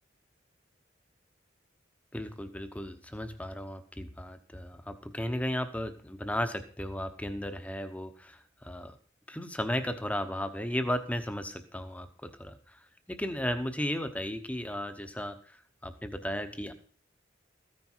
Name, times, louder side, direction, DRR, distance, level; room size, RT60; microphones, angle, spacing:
voice 1, 2.1-9.0 9.3-16.7, equal, 5° left, 9 dB, 0.9 m, -35 dB
15.0 x 9.7 x 4.6 m, 0.43 s
head